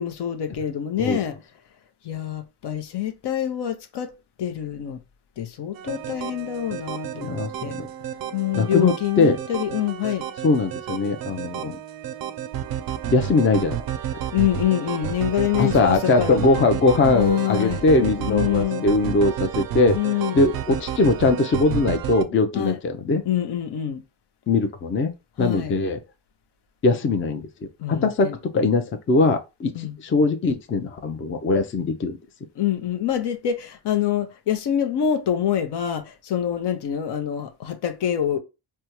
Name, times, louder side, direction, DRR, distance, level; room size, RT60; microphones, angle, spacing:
voice 1, 0.0-1.3 2.0-4.1 4.4-5.0 5.4-7.7 8.3-10.2 14.3-16.4 17.1-17.8 18.2-18.9 19.9-20.4 22.5-22.8 23.3-24.0 25.4-25.8 27.8-28.4 29.7-30.0 32.6-38.4, left 10 dB, 60° left, 0.7 m, -26 dB
sound 1, 5.8-22.2, right 10 dB, 50° right, 0.4 m, -31 dB
voice 2, 7.2-7.9 8.6-9.4 10.4-11.8 13.1-13.8 15.6-20.0 20.3-23.2 24.5-25.1 25.4-26.0 26.8-27.4 27.9-28.3 28.5-32.2, left 3 dB, 25° left, 0.5 m, -21 dB
3.4 x 2.1 x 2.9 m
cardioid pair, 80°, 46 cm